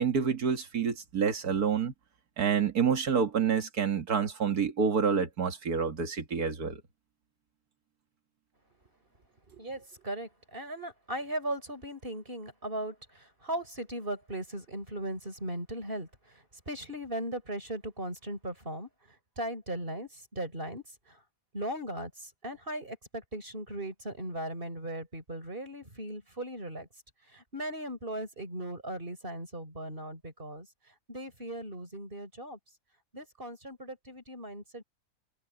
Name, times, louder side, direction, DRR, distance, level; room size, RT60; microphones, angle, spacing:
voice 1, 0.0-1.9 2.4-6.8, right 6 dB, 75° right, 2.3 m, -28 dB
voice 2, 9.5-21.2 21.5-26.9 27.3-30.7 31.1-32.6 33.1-34.8, right 1 dB, 35° right, 5.1 m, -38 dB
omnidirectional pair, 1.6 m